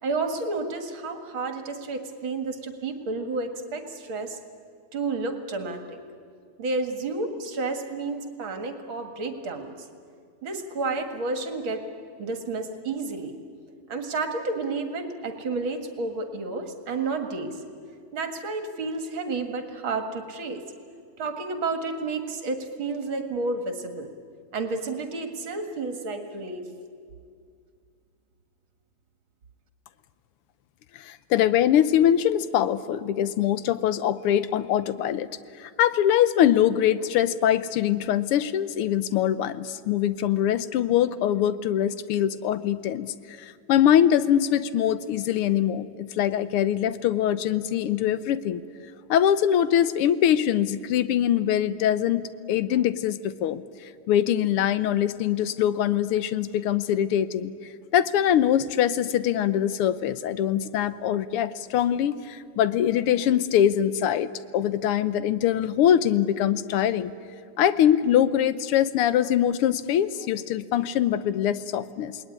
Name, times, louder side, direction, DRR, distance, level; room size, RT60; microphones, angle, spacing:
voice 1, 0.0-4.4 4.9-6.0 6.6-9.9 10.4-11.8 12.2-13.3 13.9-17.6 18.1-20.6 21.2-24.1 24.5-26.7, right 3 dB, 65° right, 6 dB, 2.7 m, -31 dB
voice 2, 30.9-35.3 35.6-48.6 49.1-52.2 52.5-53.6 54.1-57.5 57.9-67.1 67.6-72.2, left 10 dB, 85° left, 14 dB, 1.8 m, -23 dB
28.0 x 20.0 x 9.8 m, 2.3 s
omnidirectional pair, 2.4 m